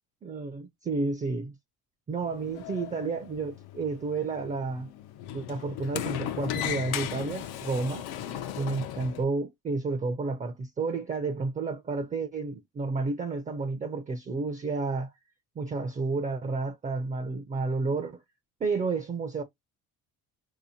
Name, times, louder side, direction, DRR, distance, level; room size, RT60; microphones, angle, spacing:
voice 1, 0.2-1.5 2.1-4.9 5.3-8.1 8.6-15.1 15.6-18.2 18.6-19.4, right 3 dB, 20° right, 0.4 m, -31 dB
Sliding door, 2.2-9.2, left 10 dB, 85° left, 0.6 m, -37 dB
3.5 x 2.8 x 2.6 m
cardioid pair, 110°, 38 cm